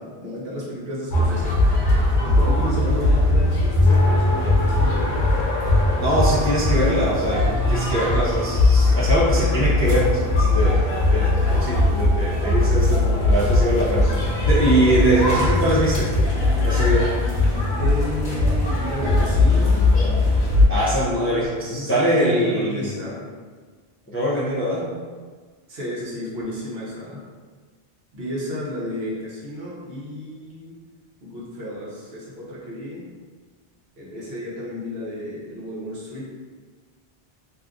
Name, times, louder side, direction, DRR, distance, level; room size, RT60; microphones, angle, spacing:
voice 1, 0.0-1.6 2.2-5.2 17.7-20.0 21.7-23.3 25.7-27.2 28.1-30.7 31.2-33.1 34.0-36.3, left 1 dB, 65° right, -6 dB, 1.1 m, -32 dB
sound 1, 1.1-20.7, left 2 dB, 50° left, 0.8 m, -19 dB
Race car auto racing, 3.9-10.2, left 2 dB, 85° left, 0.9 m, -32 dB
voice 2, 6.0-10.8 11.1-11.3 11.6-14.1 14.4-16.1 16.6-17.1 20.7-23.0 24.1-24.9, right 1 dB, 20° left, -8 dB, 0.4 m, -22 dB
2.7 x 2.4 x 3.6 m, 1.5 s
omnidirectional pair, 1.1 m